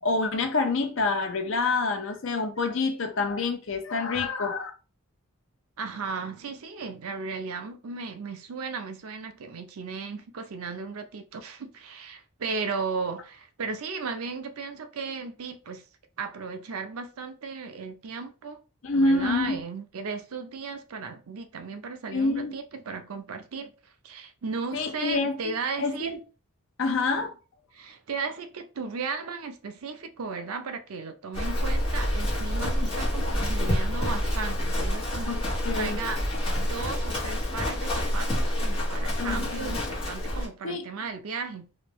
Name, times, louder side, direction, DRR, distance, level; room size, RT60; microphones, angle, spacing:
voice 1, 0.0-4.7 18.8-19.6 22.1-22.5 24.7-25.4 25.8-26.2 26.8-27.3 35.3-36.0 39.2-39.7 40.6-40.8, left 3 dB, 60° left, 0.6 m, -27 dB
voice 2, 5.8-15.8 16.2-18.6 18.9-23.7 24.0-26.2 27.7-36.2 36.6-41.7, right 4 dB, 80° right, 0.5 m, -35 dB
Livestock farm animals working animals, 31.3-40.5, left 1 dB, 25° left, 1.2 m, -28 dB
3.1 x 2.6 x 3.0 m
head